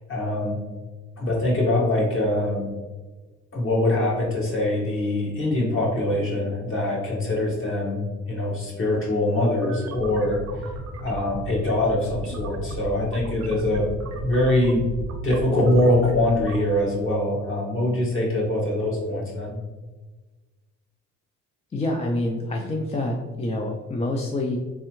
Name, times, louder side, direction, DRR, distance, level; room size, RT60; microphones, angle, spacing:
voice 1, 0.1-0.6 1.2-2.7 3.5-10.7 11.0-13.9 14.1-14.9 15.2-19.6, left 1 dB, 45° left, -4 dB, 1.5 m, -23 dB
sound 1, 9.5-16.6, right 1 dB, 60° right, 0.7 m, -35 dB
voice 2, 21.7-24.6, left 1 dB, 20° left, 0 dB, 0.4 m, -27 dB
3.5 x 3.3 x 3.0 m, 1.2 s
cardioid pair, 90°, 30 cm